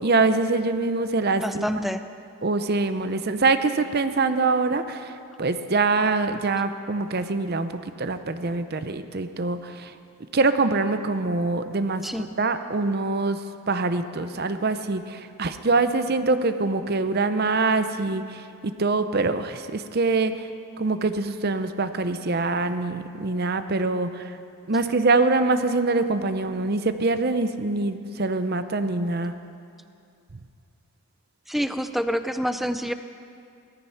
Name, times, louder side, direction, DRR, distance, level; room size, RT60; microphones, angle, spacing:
voice 1, 0.0-1.7 2.4-9.9 10.3-20.5 20.8-24.4 24.7-29.3, right 3 dB, 45° right, 10 dB, 0.6 m, -24 dB
voice 2, 1.4-2.0 12.0-12.3 31.5-32.9, equal, ahead, 10 dB, 0.4 m, -27 dB
17.5 x 14.0 x 5.8 m, 2.5 s
head